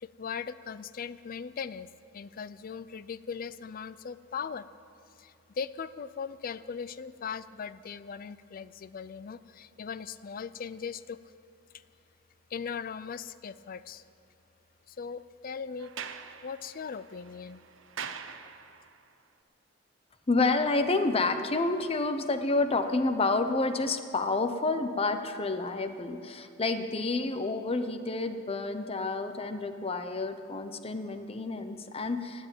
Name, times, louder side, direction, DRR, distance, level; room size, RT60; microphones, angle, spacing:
voice 1, 0.0-4.7 5.2-11.2 12.5-14.0 14.9-15.9 16.4-17.6, left 6 dB, 45° left, 15 dB, 0.4 m, -39 dB
Sliding door, 15.8-19.0, right 7 dB, 80° right, 0.8 m, -43 dB
voice 2, 20.3-32.5, left 3 dB, 30° left, 9 dB, 0.8 m, -29 dB
18.0 x 8.3 x 9.0 m, 2.7 s
head